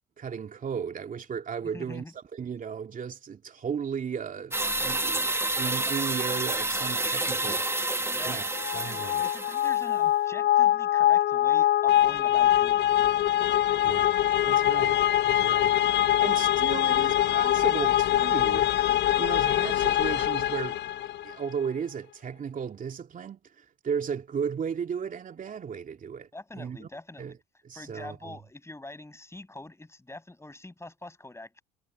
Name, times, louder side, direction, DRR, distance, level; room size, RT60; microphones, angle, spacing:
voice 1, 0.2-7.9 8.2-8.5 8.7-9.2 13.8-14.2 14.4-15.0 15.3-18.7 19.2-20.8 21.2-26.9 27.2-27.3 27.6-28.4, right 7 dB, 45° right, 2.7 m, -35 dB
voice 2, 1.7-2.1 8.0-12.8 26.3-27.4 27.7-31.6, left 2 dB, 15° left, 7.1 m, -44 dB
sound 1, 4.5-9.9, right 2 dB, 15° right, 1.9 m, -29 dB
sound 2, 8.5-21.4, left 12 dB, 70° left, 1.5 m, -23 dB
hypercardioid pair, 55°, 19 cm